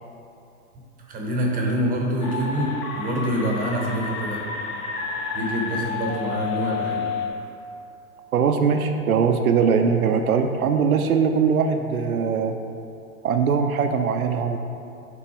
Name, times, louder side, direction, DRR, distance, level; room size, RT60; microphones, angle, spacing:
voice 1, 1.1-4.4 5.3-7.0, equal, 20° right, -1 dB, 0.8 m, -26 dB
sound 1, 2.2-7.3, left 5 dB, 30° left, 0.7 m, -30 dB
voice 2, 8.3-12.6 13.2-14.6, right 6 dB, 90° right, 6 dB, 0.5 m, -21 dB
6.1 x 3.8 x 4.8 m, 2.7 s
hypercardioid pair, 105°, 42 cm